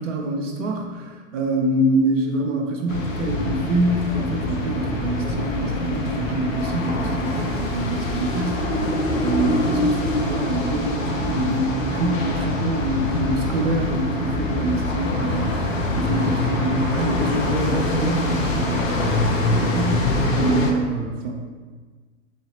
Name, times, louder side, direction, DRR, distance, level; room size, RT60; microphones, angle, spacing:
voice 1, 0.0-15.6 16.0-21.4, right 2 dB, 65° right, 2 dB, 0.8 m, -25 dB
sound 1, 2.9-20.7, left 2 dB, 75° left, 0.7 m, -24 dB
3.8 x 3.2 x 2.9 m, 1.4 s
figure-of-eight pair, 100°, 40 cm